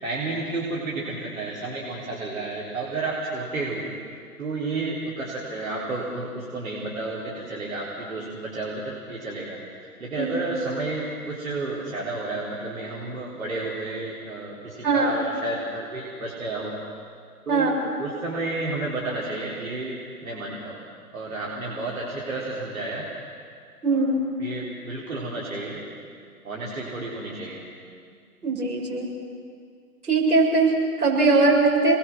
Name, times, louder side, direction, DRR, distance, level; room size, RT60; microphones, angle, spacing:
voice 1, 0.0-3.9 4.4-16.8 17.5-20.8 21.1-23.0 23.9-24.1 24.4-25.8 26.4-27.6, right 2 dB, 60° right, -5 dB, 4.3 m, -31 dB
voice 2, 14.8-15.1 17.5-17.7 23.8-24.2 28.4-29.1 30.1-32.0, right 3 dB, 75° right, -2 dB, 6.7 m, -21 dB
28.5 x 21.0 x 6.2 m, 2.2 s
figure-of-eight pair, 130°, 46 cm